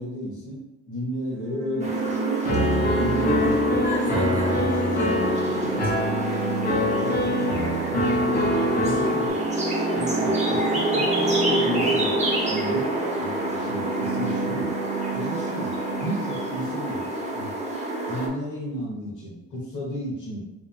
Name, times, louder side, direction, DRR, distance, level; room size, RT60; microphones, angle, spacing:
voice 1, 0.0-2.1 2.4-3.6 4.0-5.2 6.9-7.5 8.0-8.3 8.8-9.5 9.9-14.8 15.1-17.1 17.3-17.5 18.1-20.4, equal, 80° left, -4 dB, 1.4 m, -33 dB
sound 1, 1.3-17.0, right 5 dB, 75° right, 0.6 m, -32 dB
sound 2, 1.8-18.3, right 1 dB, 25° right, 0.9 m, -27 dB
Piano, 2.4-9.3, left 1 dB, 30° left, 0.8 m, -24 dB
voice 2, 3.7-6.1, left 1 dB, 5° left, -4 dB, 1.4 m, -36 dB
3.3 x 3.0 x 2.6 m, 0.95 s
cardioid pair, 90°, 30 cm